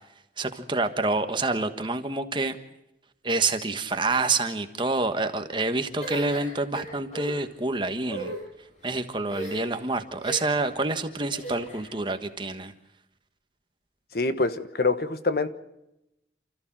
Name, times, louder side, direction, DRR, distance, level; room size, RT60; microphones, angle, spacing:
voice 1, 0.4-2.6 3.2-8.3 8.8-12.7, right 3 dB, 25° right, 8 dB, 1.4 m, -27 dB
sound 1, 6.0-7.3 8.0-8.4 9.3-9.8 10.2-10.7 11.3-11.9, right 1 dB, 40° left, 7.4 m, -36 dB
voice 2, 14.1-15.5, left 3 dB, 60° left, 11 dB, 1.2 m, -25 dB
29.0 x 14.5 x 7.5 m, 0.89 s
head